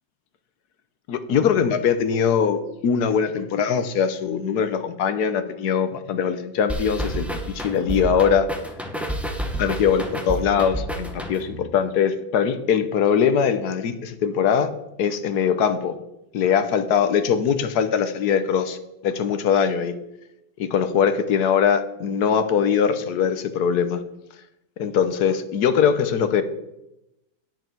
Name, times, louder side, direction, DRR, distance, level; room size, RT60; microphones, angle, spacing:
voice 1, 1.1-8.5 9.6-14.7 15.0-15.9 16.3-18.8 19.0-19.9 20.6-24.0 24.8-26.4, left 7 dB, 60° left, 10 dB, 1.3 m, -21 dB
sound 1, 6.7-11.7, right 1 dB, ahead, 0.9 m, -30 dB
10.5 x 9.8 x 4.6 m, 0.88 s
omnidirectional pair, 2.2 m